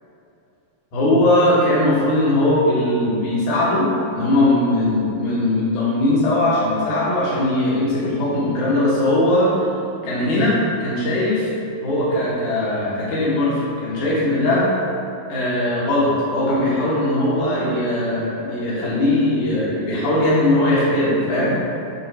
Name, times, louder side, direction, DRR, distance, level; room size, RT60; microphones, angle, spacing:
voice 1, 0.9-9.5 10.0-11.5 11.8-14.7 15.3-21.5, left 1 dB, 60° left, -8 dB, 2.9 m, -19 dB
8.5 x 3.7 x 5.7 m, 2.7 s
omnidirectional pair, 4.0 m